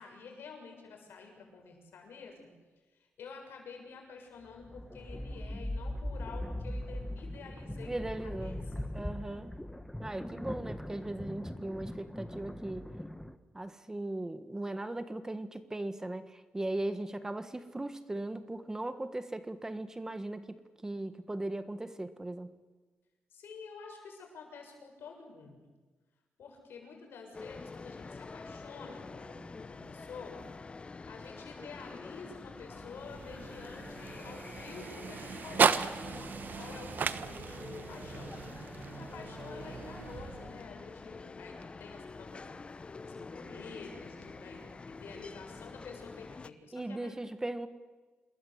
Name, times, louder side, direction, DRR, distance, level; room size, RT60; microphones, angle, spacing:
voice 1, 0.0-2.5 2.9-8.9 23.3-25.6 26.4-30.5 31.1-36.0 36.6-38.4 39.0-47.2, left 5 dB, 80° left, 2 dB, 7.1 m, -49 dB
sound 1, 4.5-13.4, left 1 dB, 5° left, 1.3 m, -40 dB
voice 2, 7.9-8.6 8.9-9.6 10.0-12.9 13.5-22.5 46.7-47.7, right 2 dB, 15° right, 11 dB, 1.5 m, -38 dB
sound 2, 27.3-46.5, left 4 dB, 30° left, 0.9 m, -47 dB
sound 3, 32.6-40.9, right 6 dB, 55° right, 1.2 m, -35 dB
27.5 x 21.0 x 8.1 m, 1.3 s
cardioid pair, 105°, 4 cm